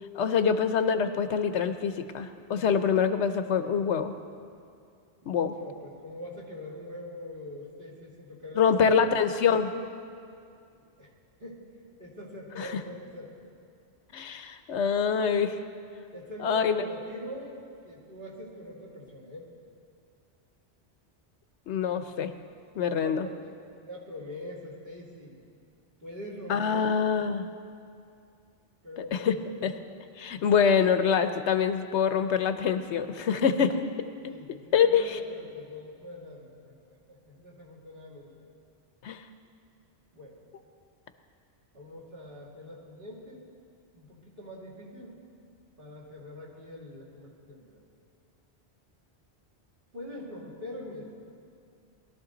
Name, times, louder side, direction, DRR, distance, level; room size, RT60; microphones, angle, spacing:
voice 1, 0.1-4.1 5.3-5.5 8.6-9.7 12.6-12.7 14.1-15.6 16.4-16.8 21.7-22.3 22.8-23.3 26.5-27.5 29.1-29.3 29.6-29.7 30.2-33.8 34.7-35.2 39.0-39.2, left 6 dB, 85° left, 9 dB, 1.0 m, -25 dB
voice 2, 5.2-8.9 11.0-11.1 11.4-11.7 12.0-13.4 16.1-17.6 17.8-19.5 22.9-23.5 23.8-25.4 26.0-27.0 28.8-29.7 34.2-36.7 37.1-38.5 40.1-40.4 41.7-43.5 43.9-45.2 45.8-47.8 49.9-51.1, left 1 dB, 50° right, -5 dB, 2.8 m, -43 dB
21.0 x 12.5 x 3.9 m, 2.4 s
omnidirectional pair, 1.1 m